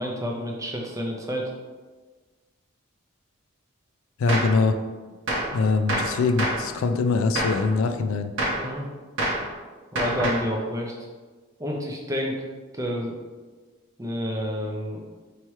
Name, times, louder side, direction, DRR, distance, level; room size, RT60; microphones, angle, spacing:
voice 1, 0.0-1.5 5.6-5.7 8.5-8.9 9.9-11.1 11.6-12.4 12.7-13.1 14.0-15.0, equal, 15° right, 0 dB, 0.5 m, -29 dB
voice 2, 4.2-4.8 5.5-8.3, left 4 dB, 70° left, 7 dB, 0.3 m, -23 dB
Gunshot gunfire, 4.3-4.6 5.3-5.6 5.9-6.7 7.4-7.7 8.4-8.7 9.2-9.5 10.0-10.5, right 1 dB, 60° right, 0.8 m, -26 dB
4.6 x 2.9 x 3.1 m, 1.3 s
head